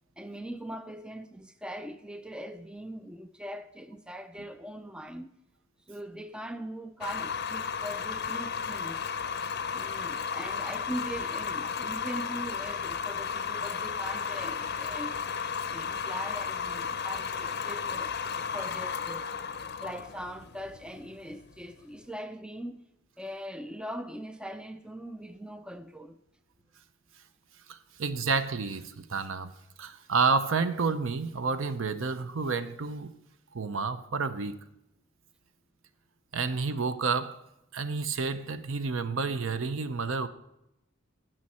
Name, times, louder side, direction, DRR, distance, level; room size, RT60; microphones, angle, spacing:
voice 1, 0.2-5.3 5.9-9.0 9.7-19.3 19.8-22.9 23.2-26.2, equal, 5° right, 0.3 m, -41 dB
sound 1, 7.0-22.0, left 6 dB, 50° left, 0.6 m, -34 dB
sound 2, 9.2-18.1, right 1 dB, 40° right, 2.9 m, -59 dB
voice 2, 27.7-29.5 29.8-33.1 33.5-34.6 36.3-37.4 37.7-40.3, right 4 dB, 65° right, 0.7 m, -30 dB
16.0 x 6.3 x 4.3 m
head